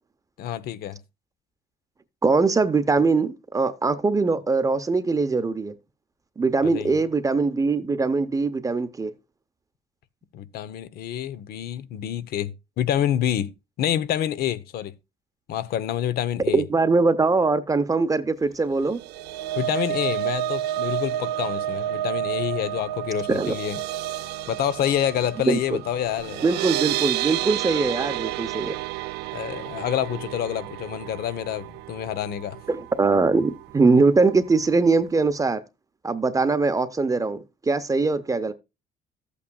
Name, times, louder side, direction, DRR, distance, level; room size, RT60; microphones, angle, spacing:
voice 1, 0.4-1.0 6.6-7.0 10.3-14.9 15.5-16.6 19.6-23.8 24.5-26.4 29.3-32.6, left 10 dB, 70° left, 0.8 m, -27 dB
voice 2, 2.2-5.7 6.4-9.1 16.5-19.0 23.3-23.5 25.5-25.8 26.4-28.8 32.7-35.6 36.0-38.5, right 3 dB, 20° right, 0.7 m, -22 dB
sound 1, 18.8-33.1 33.4-33.6 33.9-34.1, right 13 dB, 85° right, 0.5 m, -30 dB
13.0 x 8.4 x 2.3 m
cardioid pair, 110°, 17 cm